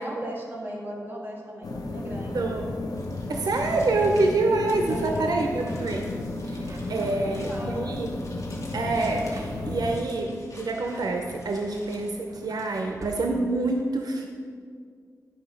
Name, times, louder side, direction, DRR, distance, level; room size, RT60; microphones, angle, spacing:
voice 1, 0.0-2.4 4.9-5.9 7.0-8.0, right 1 dB, 30° right, -3 dB, 2.0 m, -38 dB
sound 1, 1.6-10.0, left 2 dB, 75° left, 0.8 m, -33 dB
voice 2, 2.3-3.0 3.3-6.1 6.4-8.1 8.7-14.3, right 2 dB, 90° right, 3 dB, 0.7 m, -27 dB
sound 2, 2.9-12.1, left 1 dB, 50° left, 1.7 m, -49 dB
Drawer open or close, 6.6-7.6 8.6-9.8 10.6-13.3, right 2 dB, 55° right, 1.1 m, -47 dB
11.0 x 5.0 x 5.2 m, 2.1 s
wide cardioid pair, 90°, 7 cm